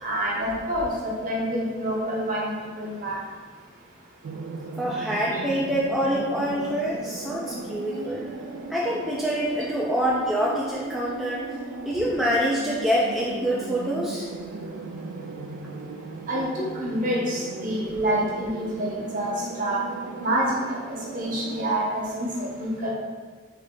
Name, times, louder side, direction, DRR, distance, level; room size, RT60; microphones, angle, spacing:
voice 1, 0.0-3.2 5.3-5.4 16.3-19.3 19.6-19.8 20.2-20.5 20.9-22.9, right 1 dB, 40° right, -4 dB, 1.0 m, -27 dB
sound 1, 4.2-21.7, right 3 dB, 75° right, 0.4 m, -37 dB
voice 2, 4.8-8.2 8.7-11.4 11.8-14.3, equal, ahead, -6 dB, 0.3 m, -26 dB
3.7 x 3.3 x 3.7 m, 1.5 s
head